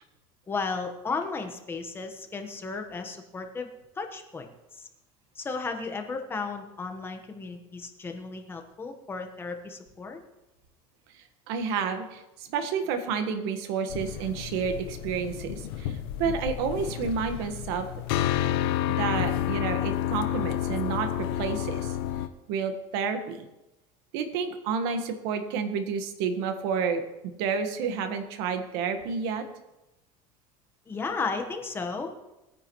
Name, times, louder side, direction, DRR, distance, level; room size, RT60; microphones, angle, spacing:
voice 1, 0.5-3.7 4.0-4.5 4.7-4.8 5.4-10.2 30.9-32.1, left 4 dB, 20° left, 5 dB, 1.3 m, -34 dB
voice 2, 11.5-17.9 19.0-21.9 22.5-23.5 24.1-27.0 27.4-29.5, right 6 dB, 75° right, 7 dB, 1.6 m, -30 dB
sound 1, 13.9-22.3, left 12 dB, 90° left, 0.8 m, -30 dB
20.0 x 9.8 x 3.1 m, 0.97 s
cardioid pair, 140°, 12 cm